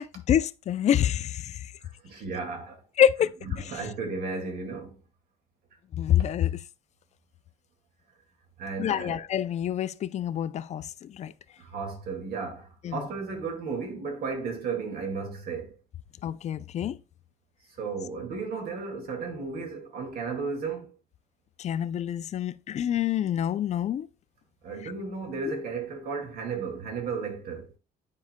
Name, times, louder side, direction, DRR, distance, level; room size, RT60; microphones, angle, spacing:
voice 1, 0.0-1.7 3.0-3.3 5.9-6.5 8.8-11.3 12.8-13.0 16.2-17.0 21.6-24.1, left 10 dB, 40° left, 0.4 m, -26 dB
voice 2, 1.8-2.8 3.5-5.0 8.6-9.3 11.6-15.7 17.7-20.9 24.6-27.7, right 4 dB, 60° right, 2.1 m, -34 dB
9.6 x 4.7 x 2.2 m
cardioid pair, 110°, 17 cm